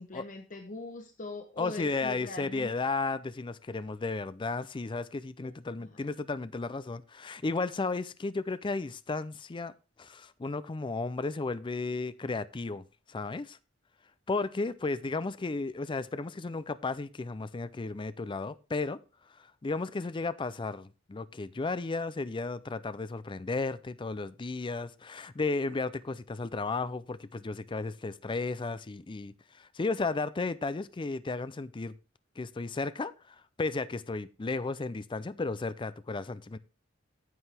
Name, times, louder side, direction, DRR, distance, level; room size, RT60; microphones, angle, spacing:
voice 1, 0.0-2.7 5.4-5.5, left 3 dB, 40° left, 0.9 m, -41 dB
voice 2, 1.6-9.7 10.0-13.6 14.3-19.0 19.6-31.9 32.4-36.6, left 3 dB, 25° left, 0.4 m, -34 dB
9.6 x 8.0 x 3.4 m
head